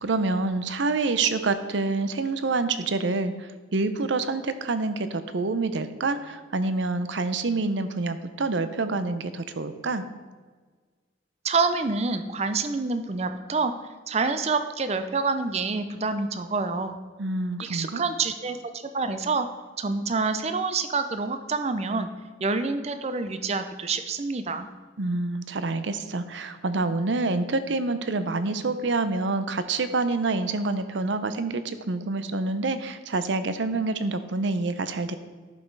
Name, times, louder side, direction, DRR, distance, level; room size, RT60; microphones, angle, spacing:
voice 1, 0.0-10.0 17.2-18.0 25.0-35.2, right 3 dB, 75° right, 11 dB, 0.6 m, -27 dB
voice 2, 11.4-13.7 14.1-17.0 17.6-18.6 18.9-19.5 19.8-22.1 22.4-24.7, right 4 dB, 35° right, 9 dB, 0.5 m, -27 dB
11.5 x 5.4 x 4.6 m, 1.5 s
head